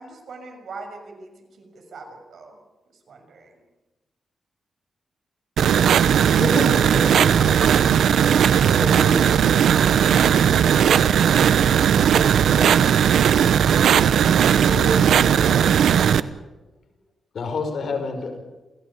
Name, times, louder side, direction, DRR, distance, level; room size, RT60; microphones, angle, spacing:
voice 1, 0.0-2.6 3.1-3.6, right 3 dB, 65° right, 5 dB, 6.5 m, -41 dB
sound 1, 5.6-16.2, right 8 dB, 90° right, 0.9 m, -17 dB
voice 2, 6.3-7.5 17.3-18.4, left 4 dB, 60° left, 5 dB, 5.5 m, -29 dB
voice 3, 6.9-7.3 8.8-9.6 14.3-15.9, equal, 5° left, 3 dB, 5.2 m, -31 dB
28.5 x 17.5 x 8.6 m, 1.1 s
wide cardioid pair, 135°, 0 cm